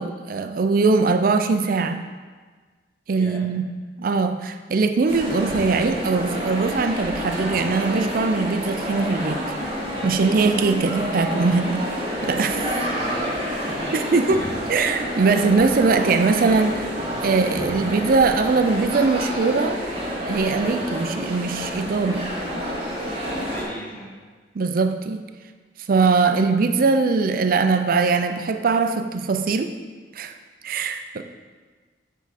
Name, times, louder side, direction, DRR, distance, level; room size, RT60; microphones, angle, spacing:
voice 1, 0.0-2.0 3.1-3.7 4.0-9.4 10.0-11.9 12.2-12.8 13.9-14.4 14.7-16.9 17.2-19.8 20.3-22.3 24.5-25.3 25.9-29.7 30.1-30.3 30.6-31.2, right 4 dB, 55° right, 8 dB, 0.4 m, -21 dB
voice 2, 3.2-3.5 12.9-14.0 14.3-14.5 23.2-24.1, equal, 10° left, -2 dB, 1.0 m, -38 dB
sound 1, 5.1-23.6, equal, 30° right, 1.7 m, -28 dB
7.2 x 4.7 x 4.1 m, 1.4 s
head